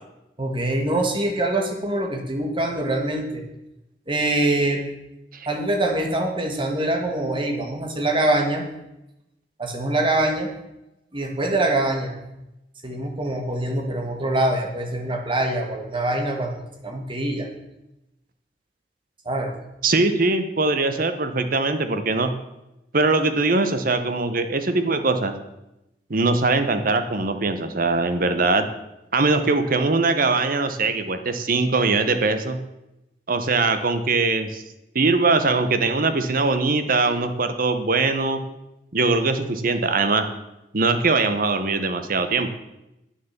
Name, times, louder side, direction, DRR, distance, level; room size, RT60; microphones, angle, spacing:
voice 1, 0.4-3.4 4.1-4.8 5.5-8.6 9.6-10.5 11.1-12.2 12.8-16.6 16.8-17.5 19.3-19.5, right 1 dB, 30° right, 3 dB, 1.7 m, -24 dB
voice 2, 19.8-22.3 22.9-25.3 26.1-28.7 29.1-32.6 33.3-34.6 34.9-38.4 38.9-40.3 40.7-42.5, right 3 dB, 55° right, 9 dB, 1.0 m, -21 dB
9.5 x 6.6 x 7.3 m, 0.91 s
head